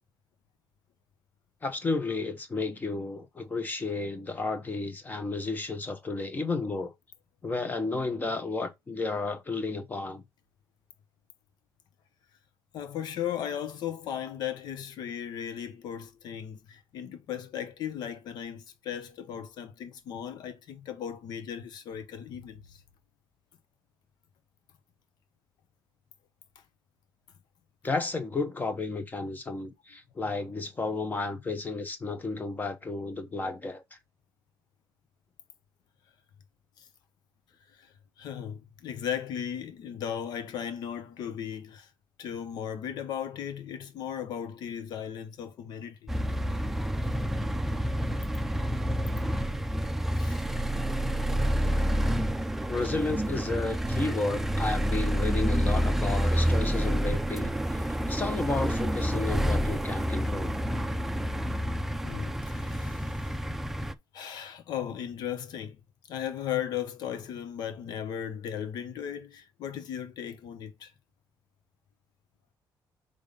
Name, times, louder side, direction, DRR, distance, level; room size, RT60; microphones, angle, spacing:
voice 1, 1.6-6.9 7.4-10.2 27.8-33.8 52.7-60.5, left 3 dB, 25° left, 1.1 m, -32 dB
voice 2, 12.7-22.8 36.8-36.9 37.7-41.9 42.2-46.1 47.0-47.1 50.1-50.4 62.0-63.3 64.1-65.8 66.1-70.9, left 9 dB, 75° left, 0.9 m, -36 dB
sound 1, 46.1-63.9, equal, 5° right, 0.5 m, -28 dB
5.1 x 3.7 x 5.2 m
cardioid pair, 120°, 7 cm